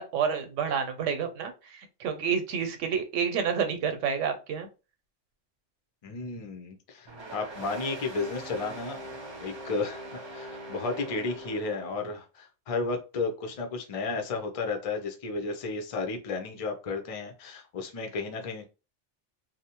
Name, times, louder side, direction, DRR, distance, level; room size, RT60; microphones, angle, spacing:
voice 1, 0.0-4.7, right 7 dB, 90° right, 0.9 m, -29 dB
voice 2, 6.0-9.1 9.4-18.7, left 3 dB, 50° left, 0.4 m, -33 dB
sound 1, 7.1-12.2, right 1 dB, 35° right, 0.5 m, -42 dB
2.7 x 2.0 x 2.8 m
omnidirectional pair, 1.2 m